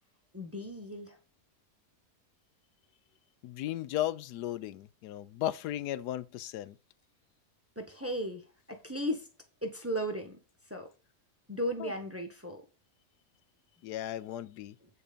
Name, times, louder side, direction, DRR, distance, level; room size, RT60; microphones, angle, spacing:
voice 1, 0.3-1.1 7.8-9.3 9.6-10.4 10.7-10.9 11.5-12.6, equal, 10° right, 1.0 m, -36 dB
voice 2, 3.4-6.8 11.8-11.9 13.8-14.7, left 13 dB, 85° left, 1.2 m, -35 dB
8.9 x 4.6 x 5.1 m
omnidirectional pair, 1.7 m